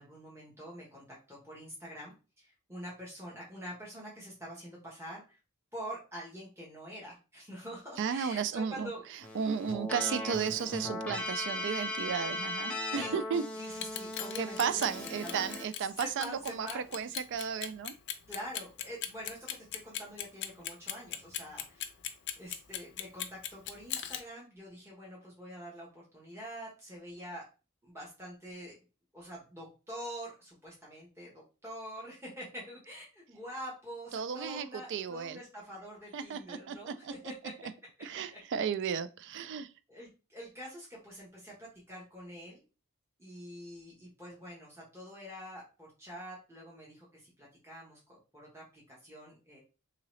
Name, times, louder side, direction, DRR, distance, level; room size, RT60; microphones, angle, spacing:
voice 1, 0.0-5.4 5.7-9.0 12.9-13.2 13.6-16.8 18.3-21.8 22.4-27.5 27.8-28.8 29.1-37.5 38.3-38.4 39.9-42.6 43.2-49.6, equal, 10° right, 0.9 m, -46 dB
voice 2, 8.0-8.9 9.3-13.4 14.4-17.9 34.1-35.4 36.1-37.1 38.0-39.7, right 7 dB, 55° right, 0.3 m, -34 dB
Keyboard (musical), 9.2-15.7, left 1 dB, 5° left, 0.6 m, -38 dB
Clock, 13.7-24.2, left 11 dB, 50° left, 0.5 m, -38 dB
3.7 x 2.8 x 3.1 m
head